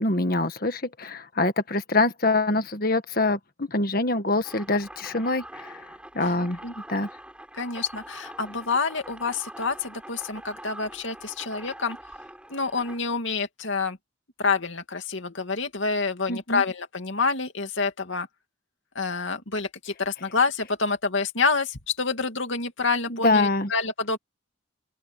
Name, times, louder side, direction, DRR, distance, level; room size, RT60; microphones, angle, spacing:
voice 1, 0.0-5.8 6.1-6.6 6.9-7.1 16.3-16.6 23.1-23.7, left 2 dB, 45° left, 1.7 m, -25 dB
sound 1, 4.4-13.0, right 1 dB, 5° right, 7.7 m, -44 dB
voice 2, 7.5-12.0 12.5-14.0 14.4-18.3 18.9-24.2, left 4 dB, 70° left, 2.6 m, -27 dB
open air
head